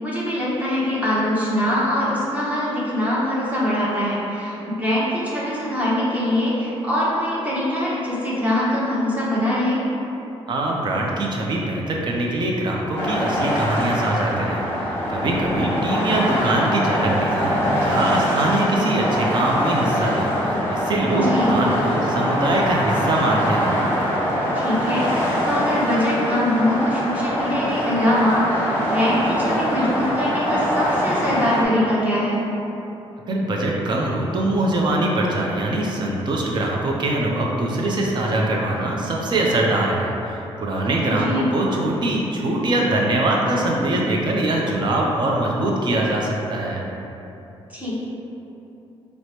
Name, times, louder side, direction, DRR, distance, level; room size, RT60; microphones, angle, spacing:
voice 1, 0.0-9.8 21.1-21.5 24.5-25.1 25.4-32.4 41.1-41.5 47.7-47.9, left 1 dB, 15° right, -8 dB, 0.8 m, -23 dB
voice 2, 10.5-14.6 15.1-20.3 20.7-23.8 33.3-46.8, right 1 dB, 45° right, -2 dB, 0.6 m, -22 dB
sound 1, 12.9-31.6, equal, 25° left, 0.8 m, -23 dB
4.8 x 2.1 x 2.9 m, 2.9 s
cardioid pair, 105°, 10 cm